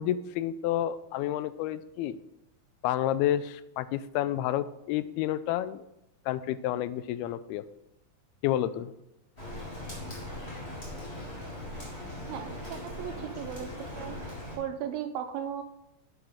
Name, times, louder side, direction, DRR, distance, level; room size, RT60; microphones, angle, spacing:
voice 1, 0.0-2.2 2.8-5.9 6.3-7.6 8.4-8.9, left 12 dB, 85° left, 14 dB, 2.4 m, -30 dB
Rain, 9.4-14.6, left 1 dB, 15° left, 3.5 m, -40 dB
voice 2, 12.3-14.3 14.6-15.6, right 9 dB, 80° right, 8 dB, 2.3 m, -37 dB
12.0 x 8.0 x 3.6 m, 0.84 s
omnidirectional pair, 4.5 m